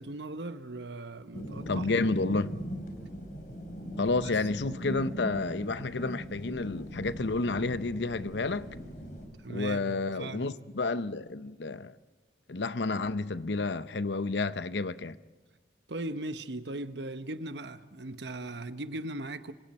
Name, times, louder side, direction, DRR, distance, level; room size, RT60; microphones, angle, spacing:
voice 1, 0.0-2.1 2.3-2.5 4.2-4.3 9.3-10.6 15.9-19.5, right 2 dB, 85° right, 1.2 m, -39 dB
sound 1, 1.3-9.3, equal, 45° left, 4.3 m, -40 dB
voice 2, 1.7-2.6 4.0-8.7 9.5-11.9 12.5-15.2, left 3 dB, 85° left, 0.8 m, -30 dB
27.0 x 26.0 x 4.4 m
head